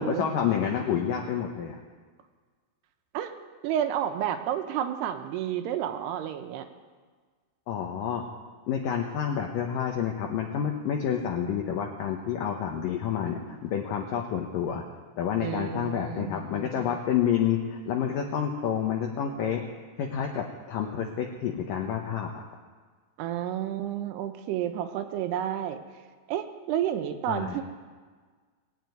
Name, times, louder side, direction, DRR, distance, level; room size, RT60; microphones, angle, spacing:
voice 1, 0.0-1.8 7.7-8.2 8.7-14.8 15.2-19.6 20.0-22.4 27.3-27.6, left 8 dB, 70° left, 2 dB, 2.2 m, -29 dB
voice 2, 3.6-6.7 15.4-16.3 23.2-25.8 26.3-27.6, right 10 dB, 80° right, 8 dB, 2.9 m, -30 dB
19.5 x 7.4 x 9.3 m, 1.5 s
omnidirectional pair, 4.9 m